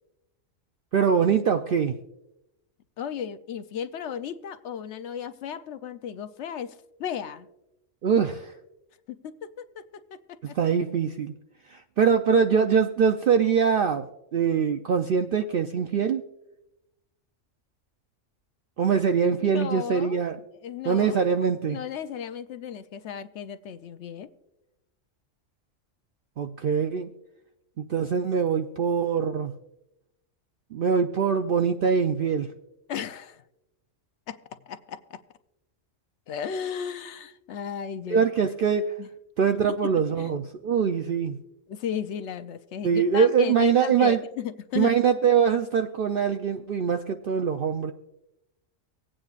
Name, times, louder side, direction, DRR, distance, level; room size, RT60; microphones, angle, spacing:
voice 1, 0.9-1.9 8.0-8.5 10.5-11.3 11.7-14.1 14.3-16.2 18.8-20.4 20.9-21.8 26.4-27.1 27.8-29.5 30.7-32.5 38.1-38.9 39.4-41.4 42.8-44.2 44.8-47.9, right 6 dB, 65° right, 6 dB, 0.5 m, -23 dB
voice 2, 3.0-7.5 9.1-10.6 19.5-20.2 20.6-21.2 21.7-24.3 32.9-33.4 34.3-35.2 36.3-38.3 39.0-39.1 39.7-40.3 41.7-44.9, left 8 dB, 65° left, 11 dB, 0.8 m, -35 dB
24.5 x 8.7 x 2.4 m, 0.91 s
omnidirectional pair, 1.4 m